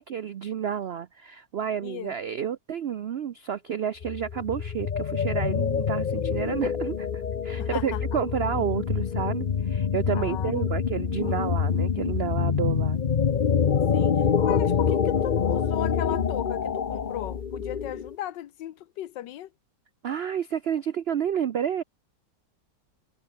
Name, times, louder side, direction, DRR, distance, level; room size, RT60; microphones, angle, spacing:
voice 1, 0.0-13.0 20.0-21.8, right 8 dB, 80° right, 0.5 m, -30 dB
voice 2, 1.8-2.1 7.6-8.2 10.1-10.5 13.9-19.5, left 12 dB, 90° left, 1.5 m, -36 dB
sound 1, 4.0-18.2, left 7 dB, 45° left, 0.6 m, -26 dB
omnidirectional pair, 1.9 m